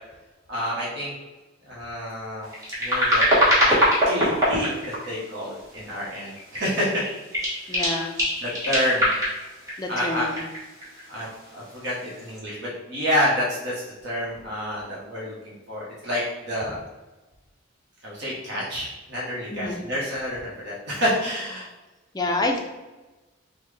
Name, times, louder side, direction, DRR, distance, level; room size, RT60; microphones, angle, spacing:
voice 1, 0.5-1.1 1.6-2.5 2.8-3.3 3.6-3.7 4.1-7.0 7.7-8.0 8.4-9.1 9.9-10.3 11.1-11.3 11.5-13.7 14.0-16.7 18.0-21.7, equal, 55° right, -6 dB, 0.9 m, -28 dB
sound 1, 2.4-5.3 5.9-6.7 6.9-11.5 12.2-12.4, equal, 15° right, 1.2 m, -23 dB
voice 2, 7.7-8.2 9.8-10.4 16.6-16.8 19.5-19.8 22.1-22.6, left 2 dB, 20° left, 3 dB, 0.3 m, -28 dB
3.9 x 2.1 x 3.2 m, 1.1 s
head